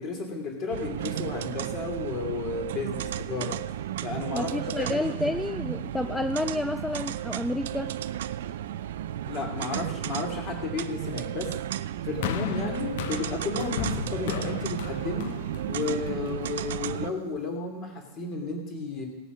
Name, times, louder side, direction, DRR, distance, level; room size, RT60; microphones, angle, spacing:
voice 1, 0.0-3.6 4.0-4.5 4.8-5.0 5.3-5.4 9.3-11.5 12.0-15.3 15.7-19.0, left 4 dB, 35° left, 2 dB, 2.8 m, -33 dB
sound 1, 0.7-17.1, right 11 dB, 75° right, 0.5 m, -33 dB
voice 2, 4.3-8.0, left 2 dB, 5° left, 9 dB, 0.3 m, -30 dB
sound 2, 12.2-16.6 17.4-17.5, left 11 dB, 65° left, 0.7 m, -35 dB
16.5 x 6.9 x 6.2 m, 1.0 s
supercardioid pair, 160°, 0 cm